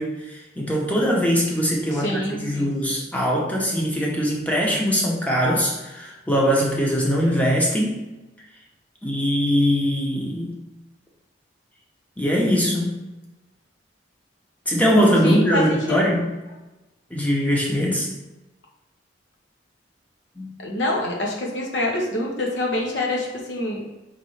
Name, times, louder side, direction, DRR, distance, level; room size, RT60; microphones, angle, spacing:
voice 1, 0.0-8.0 9.0-10.6 12.2-13.0 14.7-16.3 17.1-18.1 20.4-20.5, equal, 10° left, -3 dB, 0.8 m, -21 dB
voice 2, 1.9-2.7 15.2-16.0 20.6-23.8, left 1 dB, 75° left, -1 dB, 1.0 m, -26 dB
3.9 x 3.3 x 3.2 m, 1.1 s
head